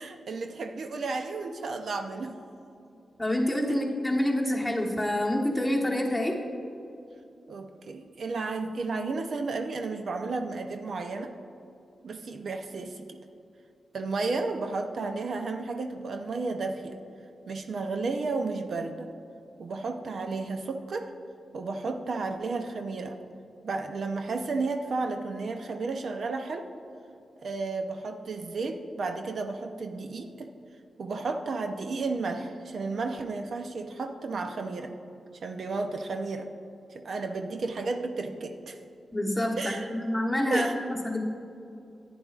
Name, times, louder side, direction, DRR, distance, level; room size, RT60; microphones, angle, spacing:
voice 1, 0.0-2.4 7.5-11.3 12.0-13.2 13.9-17.0 17.5-19.1 19.6-21.1 21.5-23.2 23.6-26.7 27.4-30.5 31.0-34.9 35.4-36.5 36.9-38.8 39.6-39.8 40.5-40.7, right 3 dB, 65° right, 6 dB, 0.5 m, -32 dB
voice 2, 3.2-6.4 39.1-41.2, left 1 dB, 10° left, -1 dB, 1.2 m, -27 dB
10.5 x 9.4 x 2.4 m, 2.6 s
cardioid pair, 90°, 0 cm